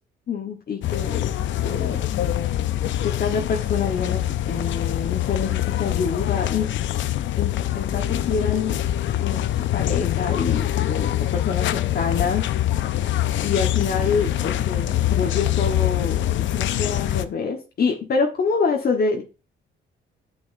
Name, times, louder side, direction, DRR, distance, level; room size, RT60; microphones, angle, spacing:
voice 1, 0.3-1.3 1.6-2.0 3.0-6.7 7.4-8.8 9.2-12.5 12.9-13.1 13.4-19.2, left 5 dB, 50° left, 1 dB, 1.3 m, -26 dB
sound 1, 0.8-17.2, left 13 dB, 70° left, 0.6 m, -24 dB
9.8 x 6.1 x 2.7 m, 0.30 s
cardioid pair, 90°, 20 cm